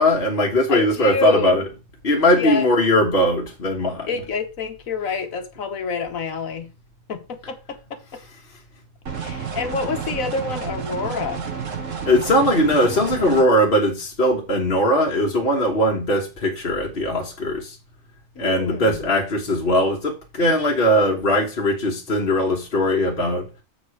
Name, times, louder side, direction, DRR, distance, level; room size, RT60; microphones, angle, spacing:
voice 1, 0.0-1.6 2.0-4.1 12.1-17.8 18.4-23.5, left 1 dB, 45° left, 1.6 m, -20 dB
voice 2, 0.7-1.6 2.3-2.7 4.1-6.7 7.1-8.0 9.2-11.5 18.3-19.1, left 4 dB, 85° left, 1.6 m, -28 dB
sound 1, 9.1-13.4, right 6 dB, 70° right, 1.4 m, -30 dB
7.4 x 4.8 x 4.8 m
omnidirectional pair, 1.4 m